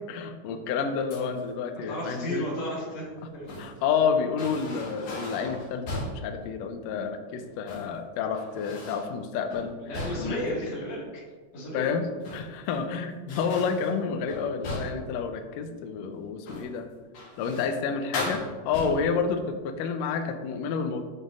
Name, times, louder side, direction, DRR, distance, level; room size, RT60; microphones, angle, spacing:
voice 1, 0.1-2.5 3.6-9.8 10.2-10.4 11.7-16.9 17.4-21.0, left 6 dB, 80° left, 7 dB, 1.5 m, -29 dB
sound 1, 1.1-1.5 3.1-3.8 4.4-6.3 7.5-8.0 8.3-9.1 9.5-10.5 12.0-12.7 13.3-15.1 16.4-16.8 17.1-17.8 18.1-19.2, left 1 dB, 65° left, 2.5 m, -38 dB
voice 2, 1.9-3.1 3.3-3.5 9.8-11.1 11.5-12.0, equal, 40° left, -7 dB, 2.1 m, -33 dB
7.8 x 5.3 x 2.4 m, 1.4 s
omnidirectional pair, 3.5 m